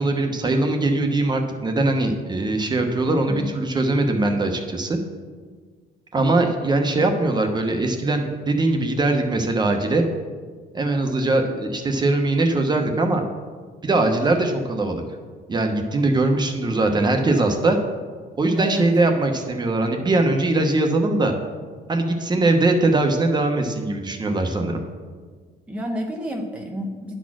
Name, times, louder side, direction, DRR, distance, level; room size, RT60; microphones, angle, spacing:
voice 1, 0.0-5.0 6.1-10.0 10.7-13.2 13.8-15.0 15.5-17.8 18.4-21.3 21.9-24.8, right 2 dB, 25° right, 4 dB, 1.0 m, -21 dB
voice 2, 18.6-18.9 25.7-27.1, left 1 dB, 5° right, 0 dB, 0.8 m, -30 dB
10.0 x 4.2 x 6.2 m, 1.5 s
cardioid pair, 110°, 17 cm